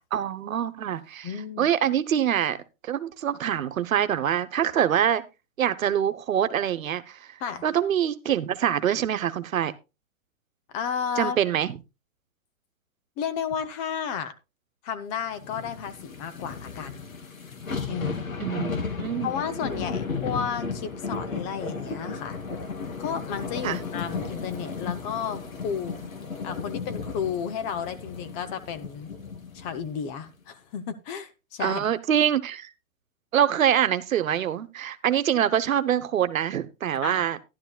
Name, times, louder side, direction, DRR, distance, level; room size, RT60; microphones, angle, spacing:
voice 1, 0.1-1.3 1.6-2.6 2.8-5.2 5.6-7.4 7.6-9.7 11.2-11.8 18.4-19.3 23.6-23.8 31.6-32.7 33.3-37.4, right 10 dB, 80° right, 1.1 m, -25 dB
voice 2, 1.2-1.7 7.4-7.6 10.7-11.4 13.2-14.3 14.8-17.0 17.9-18.3 19.2-22.4 23.0-26.0 26.4-29.1 29.5-31.9 37.0-37.2, left 7 dB, 20° left, 0.5 m, -32 dB
sound 1, 15.4-29.8 30.3-30.4, left 5 dB, 90° left, 2.7 m, -34 dB
13.0 x 11.5 x 2.2 m
hypercardioid pair, 140°, 40 cm